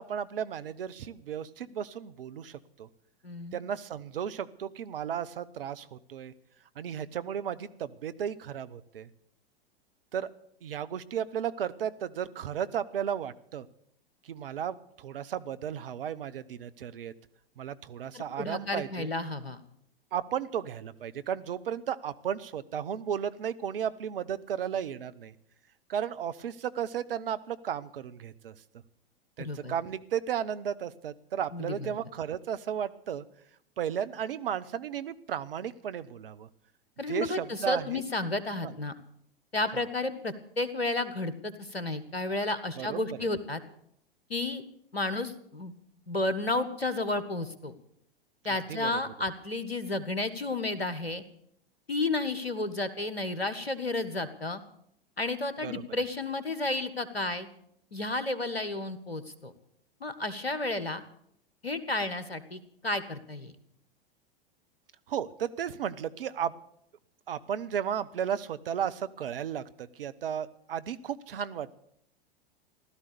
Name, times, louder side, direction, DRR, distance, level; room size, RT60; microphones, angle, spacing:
voice 1, 0.0-2.9 3.5-6.3 6.8-9.1 10.1-10.3 10.6-13.7 14.2-17.1 17.6-19.1 20.1-25.3 25.9-28.5 29.4-33.2 33.8-36.5 37.1-38.0 38.6-38.7 42.8-43.3 48.5-49.0 55.6-55.8 65.1-66.5 67.3-71.7, right 9 dB, 65° right, 14 dB, 1.0 m, -34 dB
voice 2, 3.2-3.6 18.1-19.6 29.4-29.7 31.5-32.0 37.0-38.9 39.5-43.6 44.3-44.6 44.9-45.7 46.1-47.7 48.4-51.2 51.9-54.6 55.2-57.5 57.9-59.5 60.0-61.0 61.6-63.5, left 2 dB, 90° left, 12 dB, 1.6 m, -32 dB
16.0 x 13.0 x 6.9 m, 0.71 s
figure-of-eight pair, 95°, 30 cm